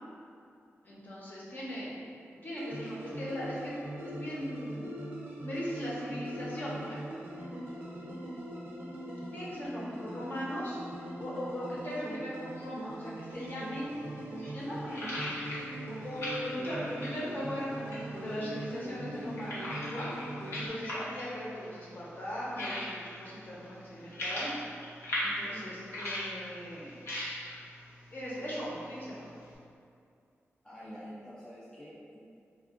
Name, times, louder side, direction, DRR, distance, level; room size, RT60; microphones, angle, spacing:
voice 1, 0.8-7.0 9.3-10.8 11.2-13.9 14.5-15.6 15.9-20.1 20.5-24.5 25.2-27.0 28.1-29.3, equal, 40° left, -7 dB, 0.7 m, -39 dB
sound 1, 2.6-20.7, right 1 dB, 50° right, 0.4 m, -41 dB
voice 2, 7.8-8.2 9.8-10.4 25.4-25.7 30.6-32.2, equal, 15° left, -8 dB, 0.4 m, -48 dB
sound 2, 13.8-29.6, left 1 dB, 70° left, 0.8 m, -41 dB
4.3 x 2.3 x 2.4 m, 2.4 s
wide cardioid pair, 145°, 5 cm